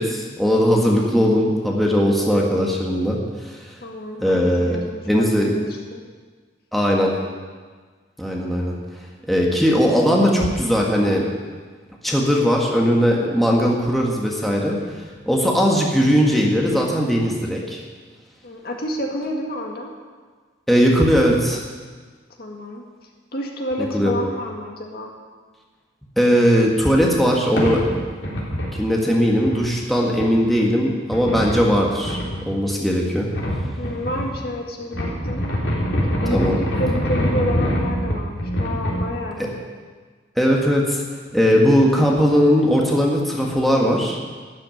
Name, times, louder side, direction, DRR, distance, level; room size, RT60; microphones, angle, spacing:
voice 1, 0.0-3.6 4.2-4.8 5.1-5.5 6.7-7.1 8.2-8.8 9.3-11.3 12.0-14.8 15.3-17.8 20.7-21.6 23.9-24.1 26.2-27.9 28.7-32.2 32.5-33.3 36.3-36.6 39.4-39.5 40.4-41.0 41.3-44.2, equal, ahead, -2 dB, 1.6 m, -19 dB
voice 2, 3.8-6.0 18.4-19.9 22.4-22.8 23.3-25.1 33.8-35.5 36.2-39.7, left 1 dB, 55° left, 1 dB, 1.9 m, -29 dB
sound 1, 27.1-27.2 27.6-28.8 29.2-29.6 30.2-30.3 31.1-32.4 33.3-34.3 34.8-39.1, equal, 75° left, 3.7 m, -24 dB
12.5 x 8.2 x 9.3 m, 1.5 s
head